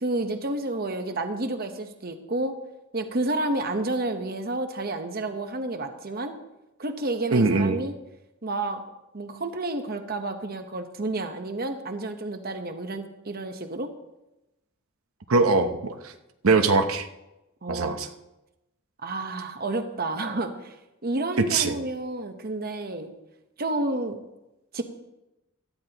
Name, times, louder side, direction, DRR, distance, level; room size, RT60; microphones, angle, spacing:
voice 1, 0.0-2.5 2.9-6.4 6.8-7.9 8.4-8.8 9.1-13.9 17.6-18.0 19.0-20.7 21.0-23.1 23.6-24.2 24.7-24.8, right 2 dB, 45° right, 7 dB, 1.0 m, -30 dB
voice 2, 7.3-7.8 15.3-16.1 16.4-17.1 17.7-18.1 21.5-21.7, right 3 dB, 85° right, 6 dB, 0.8 m, -22 dB
17.0 x 12.5 x 2.9 m, 0.95 s
head